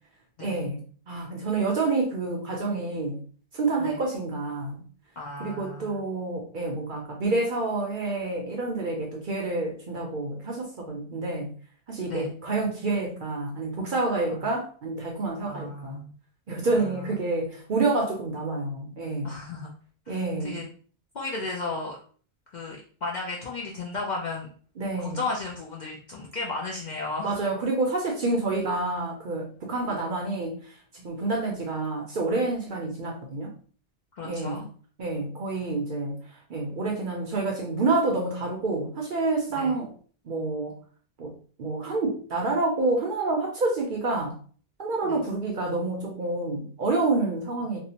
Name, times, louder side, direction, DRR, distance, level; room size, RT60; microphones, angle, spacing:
voice 1, 0.4-0.8 1.1-3.2 3.5-4.8 5.4-11.5 11.9-16.0 16.5-19.3 20.1-20.6 24.8-25.2 27.2-33.5 34.2-34.6 35.0-36.2 36.5-39.9 40.2-40.8 41.2-44.4 44.8-47.8, right 3 dB, 60° right, 0 dB, 0.6 m, -28 dB
voice 2, 5.2-6.0 12.0-12.3 14.3-14.4 15.4-16.1 16.6-17.0 17.3-17.5 19.2-19.7 20.1-20.7 21.1-22.0 22.5-24.5 25.0-27.4 34.1-34.7 39.5-39.8 45.0-45.2 47.7-47.8, left 3 dB, 60° left, -2 dB, 0.5 m, -35 dB
2.7 x 2.0 x 2.8 m, 0.43 s
omnidirectional pair, 1.2 m